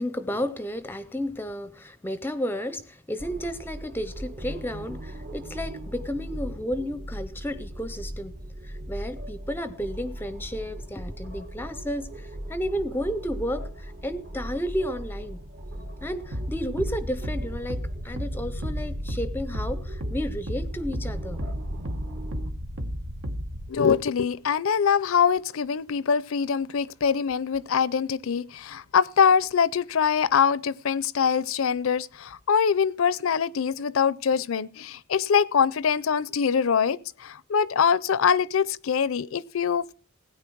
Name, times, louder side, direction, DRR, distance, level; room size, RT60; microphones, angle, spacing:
voice 1, 0.0-15.4 16.0-21.4, equal, 10° left, 0.5 m, -32 dB
sound 1, 3.2-22.5, right 1 dB, 50° right, 1.1 m, -38 dB
sound 2, 16.3-23.7, equal, 90° right, 1.5 m, -33 dB
voice 2, 23.7-39.9, left 6 dB, 75° left, 0.5 m, -23 dB
16.5 x 9.3 x 4.6 m
head